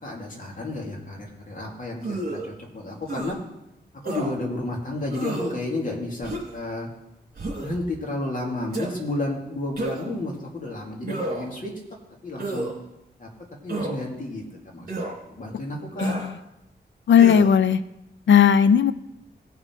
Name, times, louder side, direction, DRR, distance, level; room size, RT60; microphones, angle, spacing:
voice 1, 0.0-3.4 4.0-6.9 7.6-11.7 12.2-12.7 13.2-13.3 13.6-14.4 14.7-14.9 15.2-16.1, left 2 dB, 45° left, -1 dB, 2.5 m, -31 dB
sound 1, 2.0-2.5 3.1-3.3 4.0-4.3 5.1-5.6 6.2-6.6 7.3-7.8 8.7-8.9 9.8-10.2 11.0-11.5 12.4-12.7 13.7-14.0 14.9-15.1 16.0-16.3 17.2-17.5, right 2 dB, 50° right, 3.0 m, -30 dB
voice 2, 16.0-16.4 17.1-17.8 18.3-18.9, left 8 dB, 85° left, 14 dB, 0.5 m, -16 dB
17.5 x 5.9 x 4.5 m, 0.88 s
wide cardioid pair, 125°, 19 cm